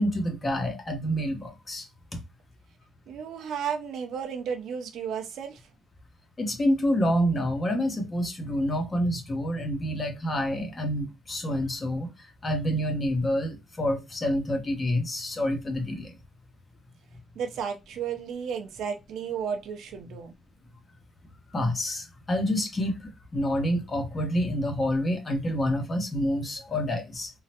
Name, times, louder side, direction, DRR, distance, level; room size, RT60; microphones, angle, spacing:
voice 1, 0.0-2.2 6.4-12.1 12.4-16.1 21.5-27.3, equal, 30° left, 1.0 m, -28 dB
voice 2, 3.1-5.6 17.4-20.3, right 7 dB, 80° right, 0.7 m, -33 dB
3.7 x 2.0 x 2.8 m
cardioid pair, 90°, 0 cm